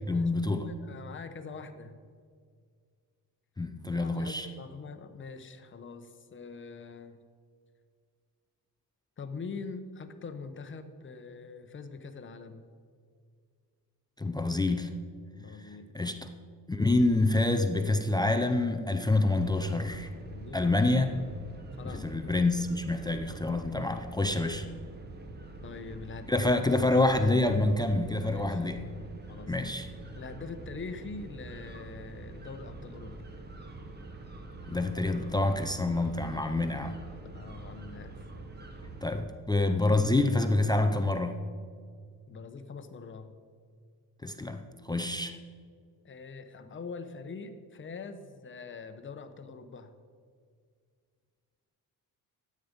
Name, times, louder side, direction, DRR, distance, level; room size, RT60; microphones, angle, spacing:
voice 1, 0.1-0.7 3.6-4.5 14.2-14.9 15.9-16.3 16.7-20.1 20.5-21.1 21.8-24.7 26.3-28.9 29.5-29.9 34.7-37.0 39.0-41.4 44.2-45.4, left 2 dB, 10° left, 8 dB, 0.4 m, -27 dB
voice 2, 0.6-2.0 3.9-7.2 9.2-12.7 15.3-16.1 20.3-20.9 21.8-22.4 25.6-26.5 28.2-28.6 29.3-29.6 30.1-33.2 36.4-36.7 37.2-38.2 42.3-43.3 46.0-49.9, left 4 dB, 30° left, 9 dB, 0.8 m, -43 dB
sound 1, 19.4-39.2, right 2 dB, 25° right, 1.0 m, -45 dB
13.0 x 8.6 x 5.2 m, 2.1 s
cardioid pair, 145°, 39 cm